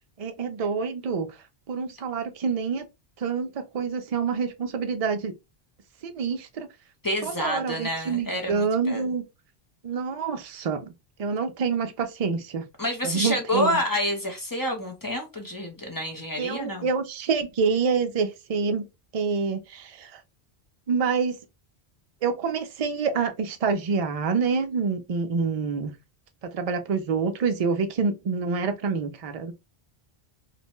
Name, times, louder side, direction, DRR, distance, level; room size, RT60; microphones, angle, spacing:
voice 1, 0.2-1.3 1.7-2.8 3.2-5.3 6.0-6.7 7.2-9.2 9.8-10.9 11.2-12.6 13.0-13.8 16.4-18.9 19.1-20.2 20.9-21.4 22.2-25.9 26.5-29.5, right 5 dB, 50° right, 0.4 m, -27 dB
voice 2, 7.0-9.1 12.8-16.9, equal, 25° left, 0.5 m, -28 dB
2.6 x 2.1 x 2.9 m
omnidirectional pair, 1.1 m